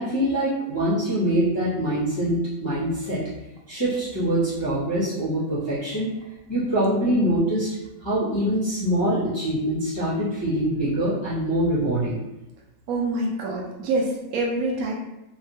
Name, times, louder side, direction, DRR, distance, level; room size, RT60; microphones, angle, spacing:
voice 1, 0.0-3.2 3.7-6.1 6.5-7.7 8.0-12.2, right 1 dB, 35° left, -11 dB, 0.4 m, -24 dB
voice 2, 12.9-14.9, right 2 dB, 70° right, -2 dB, 0.9 m, -26 dB
2.8 x 2.4 x 2.6 m, 0.97 s
omnidirectional pair, 1.6 m